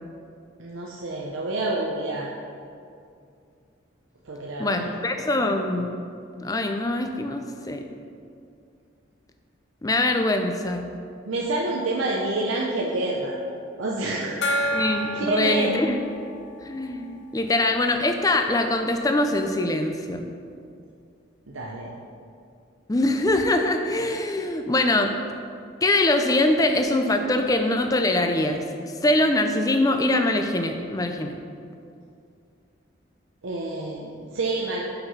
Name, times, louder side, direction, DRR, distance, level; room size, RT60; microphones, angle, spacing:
voice 1, 0.6-2.3 4.3-4.9 11.2-13.4 13.8-14.4 15.1-15.7 21.5-21.9 33.4-34.8, right 2 dB, 80° right, -3 dB, 0.7 m, -28 dB
voice 2, 4.6-5.9 6.4-7.9 9.8-10.9 14.7-16.0 16.6-20.3 22.9-25.1 25.8-31.4, left 2 dB, 20° left, 5 dB, 0.4 m, -23 dB
Gong, 14.4-17.7, equal, 60° left, 0.6 m, -30 dB
5.7 x 5.7 x 5.5 m, 2.4 s
head